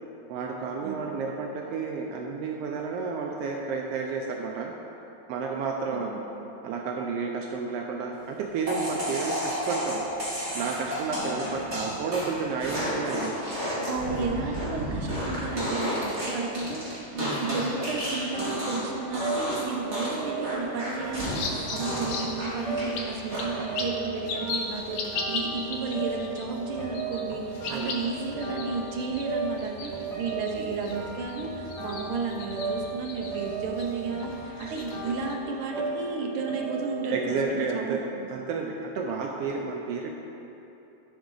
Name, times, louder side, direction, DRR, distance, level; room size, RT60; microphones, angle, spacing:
voice 1, 0.3-4.7 5.3-6.1 6.6-10.0 10.5-13.3 27.6-28.0 34.6-34.7 37.1-38.0 38.3-40.1, right 4 dB, 80° right, 0 dB, 1.4 m, -31 dB
voice 2, 0.8-1.1 5.9-6.2 11.1-11.4 13.0-13.3 13.6-25.0 25.3-34.3 34.6-38.3, right 4 dB, 65° right, 0 dB, 1.5 m, -33 dB
sound 1, 8.7-18.9 19.1-19.6 19.9-22.9 23.3-23.7, equal, 25° right, 2.4 m, -32 dB
sound 2, 18.1-37.4, right 4 dB, ahead, 1.0 m, -36 dB
sound 3, 21.0-35.3, left 3 dB, 70° left, 2.0 m, -38 dB
13.0 x 6.3 x 3.9 m, 3.0 s
omnidirectional pair, 3.3 m